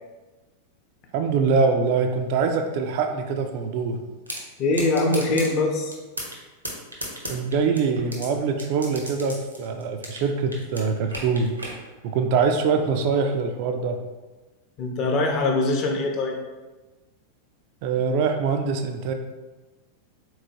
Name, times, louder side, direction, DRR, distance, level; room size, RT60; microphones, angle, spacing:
voice 1, 1.1-4.0 7.3-11.5 12.0-14.0 17.8-19.1, right 5 dB, 45° right, 5 dB, 0.3 m, -23 dB
sound 1, 4.3-4.4 4.7-5.5 5.9-6.4 6.6-8.3 8.6-10.3 10.5-11.7, right 1 dB, 85° right, 0.8 m, -33 dB
voice 2, 4.6-6.0 14.8-16.4, left 2 dB, 35° left, 2 dB, 0.6 m, -23 dB
3.8 x 3.1 x 2.7 m, 1.2 s
figure-of-eight pair, 90°, 0 cm